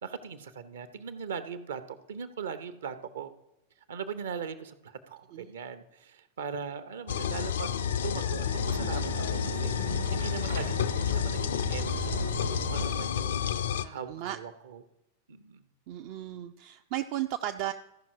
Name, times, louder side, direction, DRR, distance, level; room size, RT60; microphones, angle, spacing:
voice 1, 0.0-3.3 3.9-12.2 12.6-13.5 13.9-14.8 15.3-15.6, right 6 dB, 65° right, 12 dB, 0.8 m, -40 dB
sound 1, 7.1-13.9, left 9 dB, 65° left, 0.4 m, -30 dB
sound 2, 8.1-13.2, right 3 dB, 80° right, 1.0 m, -37 dB
voice 2, 13.8-14.4 15.9-17.7, right 13 dB, 45° right, 8 dB, 0.4 m, -35 dB
14.0 x 5.7 x 4.7 m, 0.91 s
figure-of-eight pair, 90°, 0 cm